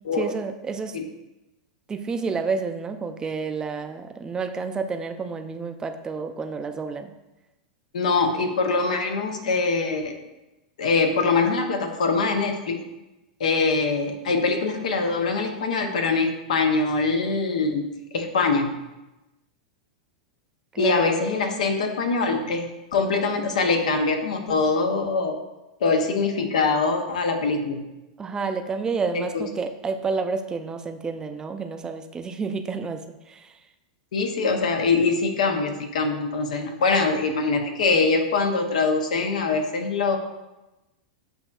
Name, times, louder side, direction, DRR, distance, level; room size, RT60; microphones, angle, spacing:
voice 1, 0.2-1.0 1.9-7.1 20.7-21.0 28.2-33.6, right 4 dB, 20° right, 7 dB, 0.4 m, -30 dB
voice 2, 7.9-10.2 10.8-12.8 13.4-18.7 20.8-25.3 25.8-27.8 29.3-29.4 34.1-40.2, left 4 dB, 80° left, 5 dB, 0.8 m, -23 dB
8.0 x 2.8 x 2.4 m, 1.0 s
hypercardioid pair, 110°, 4 cm